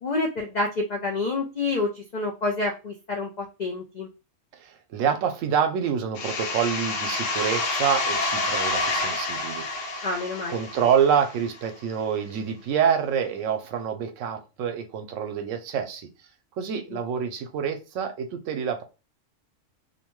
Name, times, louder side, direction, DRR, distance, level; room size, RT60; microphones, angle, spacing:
voice 1, 0.0-4.1 10.0-10.6 16.9-17.0, left 3 dB, 90° left, 0.3 m, -28 dB
voice 2, 4.5-10.1 10.5-16.1 16.6-18.8, right 7 dB, 80° right, 0.9 m, -27 dB
sound 1, 6.1-11.6, left 2 dB, 75° left, 1.0 m, -28 dB
2.7 x 2.1 x 3.0 m
omnidirectional pair, 1.3 m